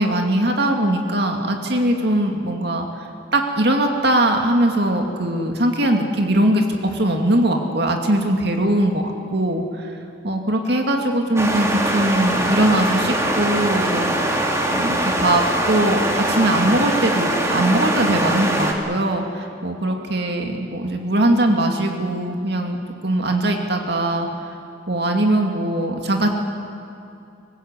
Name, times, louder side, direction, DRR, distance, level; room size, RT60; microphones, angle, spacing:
voice 1, 0.0-2.9 3.3-9.9 10.2-14.4 14.7-16.0 16.3-22.8 23.0-24.3 24.9-26.3, right 1 dB, 55° right, 3 dB, 2.4 m, -20 dB
sound 1, 11.4-18.7, right 1 dB, 15° right, 2.5 m, -22 dB
24.5 x 20.0 x 8.2 m, 2.5 s
head